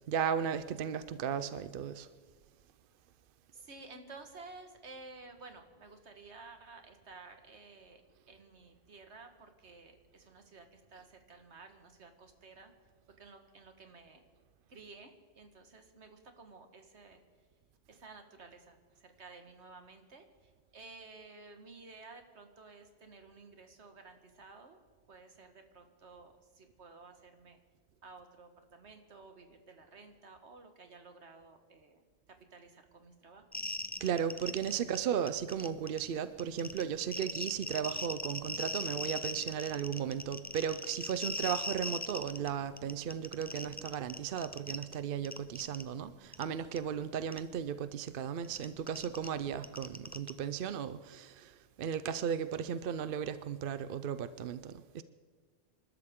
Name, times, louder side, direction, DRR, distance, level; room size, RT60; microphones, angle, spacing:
voice 1, 0.1-2.1 34.0-55.0, right 8 dB, 60° right, 0.7 m, -35 dB
voice 2, 3.5-8.0 8.3-12.7 13.2-14.2 14.7-17.2 17.9-24.8 25.1-27.6 28.0-32.0 32.5-33.5 34.7-34.8, right 3 dB, 80° right, 1.8 m, -53 dB
sound 1, 33.5-35.0 35.3-36.0 36.4-42.5 42.8-44.9 45.3-45.8 46.3-46.4 46.8-46.9 47.3-47.4 48.4-50.3, left 2 dB, 15° left, 0.4 m, -39 dB
27.0 x 12.5 x 3.7 m
omnidirectional pair, 1.1 m